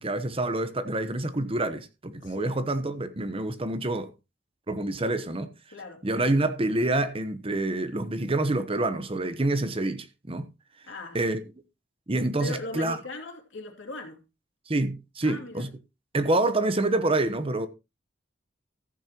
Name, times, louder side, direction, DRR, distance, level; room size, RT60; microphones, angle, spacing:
voice 1, 0.0-4.1 4.7-5.5 6.0-10.5 11.1-11.4 12.1-13.0 14.7-15.7 16.1-17.7, right 2 dB, 30° right, 1.0 m, -27 dB
voice 2, 2.2-2.6 5.7-6.0 10.9-11.2 12.4-14.2 15.2-15.7, left 2 dB, 85° left, 2.8 m, -39 dB
14.5 x 8.8 x 3.0 m
head